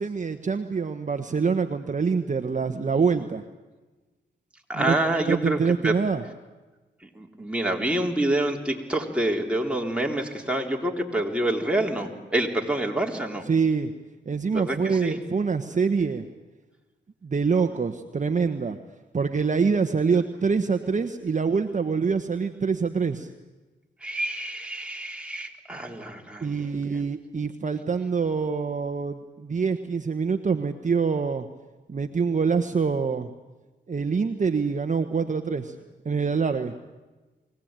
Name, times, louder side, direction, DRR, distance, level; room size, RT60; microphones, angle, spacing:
voice 1, 0.0-3.4 4.7-6.2 13.5-13.9 14.2-16.3 17.2-18.8 19.1-23.3 26.4-31.5 31.9-33.3 33.9-35.7 36.0-36.7, right 5 dB, 40° right, 6 dB, 1.3 m, -25 dB
voice 2, 4.7-5.6 5.8-5.9 7.2-13.4 14.5-15.2 24.0-26.6, right 1 dB, 5° right, 0 dB, 3.8 m, -27 dB
23.0 x 18.0 x 9.0 m, 1.2 s
cardioid pair, 65°, 19 cm